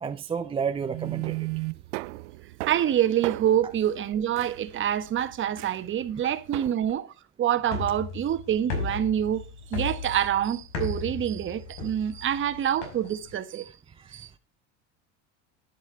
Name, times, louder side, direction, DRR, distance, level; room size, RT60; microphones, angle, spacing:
voice 1, 0.0-1.6 3.6-3.7 6.2-6.3 13.7-14.3, right 6 dB, 15° right, 0.5 m, -33 dB
sound 1, 0.8-6.7, right 23 dB, 85° right, 0.6 m, -36 dB
voice 2, 2.7-7.1 7.4-9.4 9.7-13.7 14.1-14.3, right 10 dB, 35° right, 1.3 m, -26 dB
sound 2, 7.6-13.3, left 3 dB, 80° left, 5.3 m, -35 dB
11.0 x 10.5 x 4.5 m
supercardioid pair, 125°, 35 cm